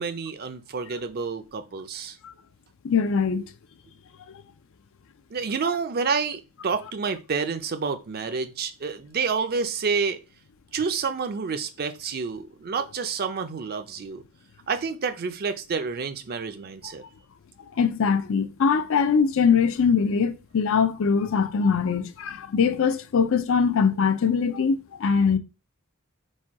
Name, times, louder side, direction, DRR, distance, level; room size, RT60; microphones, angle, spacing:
voice 1, 0.0-2.2 5.3-10.2 10.7-14.2 14.7-17.0, right 5 dB, 45° right, 0.5 m, -29 dB
voice 2, 2.8-3.5 17.8-25.4, left 6 dB, 65° left, 0.5 m, -22 dB
4.1 x 2.3 x 4.6 m
head